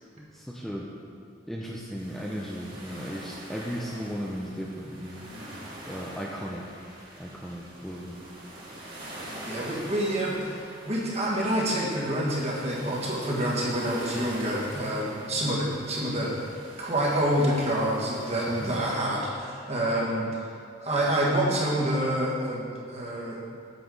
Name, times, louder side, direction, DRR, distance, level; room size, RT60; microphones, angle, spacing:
voice 1, 0.2-0.9 1.5-5.3 5.9-6.6 7.2-8.2 18.5-18.8, equal, ahead, -4 dB, 0.5 m, -36 dB
sound 1, 2.0-19.0, right 1 dB, 50° right, 2.0 m, -45 dB
voice 2, 9.4-10.6 10.9-16.3 16.8-20.2 20.8-23.4, right 1 dB, 35° right, -4 dB, 1.6 m, -27 dB
7.9 x 7.5 x 3.9 m, 2.4 s
head